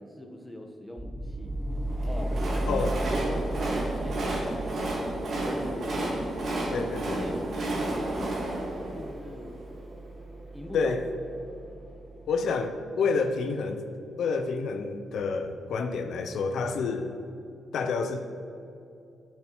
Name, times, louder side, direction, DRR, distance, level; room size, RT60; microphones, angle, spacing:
voice 1, 0.0-1.6 2.1-9.6 10.5-10.9, left 1 dB, 5° left, 2 dB, 0.9 m, -40 dB
sound 1, 1.0-12.9, right 1 dB, 25° right, 0.8 m, -36 dB
Train, 1.8-10.0, right 1 dB, 60° right, 1.6 m, -32 dB
voice 2, 6.7-7.2 10.7-11.0 12.3-13.9 14.2-17.1 17.7-18.2, left 4 dB, 75° left, 7 dB, 0.4 m, -28 dB
8.4 x 6.5 x 2.9 m, 2.7 s
cardioid pair, 75°, 0 cm